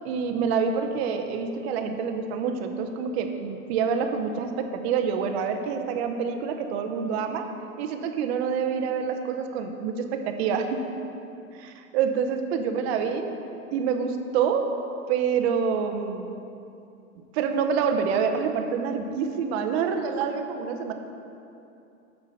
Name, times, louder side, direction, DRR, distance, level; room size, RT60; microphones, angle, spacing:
voice 1, 0.0-7.5 7.8-10.8 11.5-13.2 13.7-14.7 15.1-16.3 17.3-20.9, right 6 dB, 50° right, 6 dB, 0.9 m, -27 dB
7.3 x 6.9 x 5.6 m, 2.7 s
hypercardioid pair, 125°, 42 cm